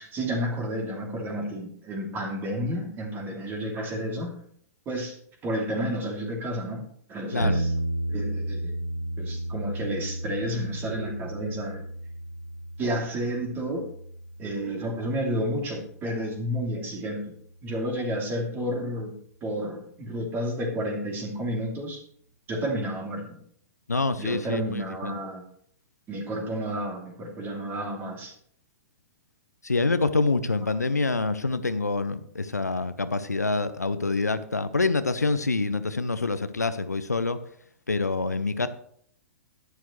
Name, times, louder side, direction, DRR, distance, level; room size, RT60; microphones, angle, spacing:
voice 1, 0.0-4.4 4.8-5.1 5.4-6.8 7.1-7.7 8.1-8.8 9.2-11.8 12.8-13.9 14.4-19.1 19.4-22.0 22.5-23.4 24.2-25.4 26.1-28.3, equal, 25° right, 1 dB, 3.0 m, -31 dB
sound 1, 7.4-17.4, right 1 dB, 90° right, 0.7 m, -34 dB
voice 2, 23.9-25.2 29.6-37.4 37.9-38.7, left 3 dB, 85° left, 12 dB, 0.7 m, -26 dB
11.5 x 10.5 x 3.2 m, 0.64 s
figure-of-eight pair, 110°, 9 cm